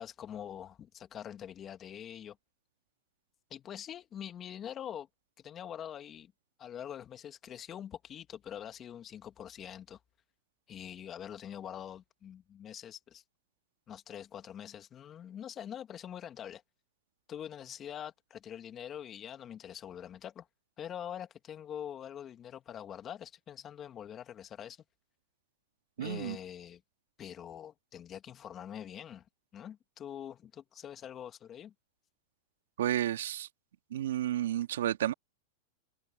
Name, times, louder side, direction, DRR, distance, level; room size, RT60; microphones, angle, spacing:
voice 1, 0.0-2.4 3.5-5.1 5.4-6.3 6.6-10.0 10.7-13.2 13.9-16.6 17.3-20.5 20.8-24.8 26.0-26.8 27.2-29.2 29.5-31.7, left 9 dB, 30° left, 2.2 m, -44 dB
voice 2, 26.0-26.4 32.8-33.5 33.9-35.1, right 12 dB, 80° right, 2.0 m, -31 dB
hypercardioid pair, 120°, 0 cm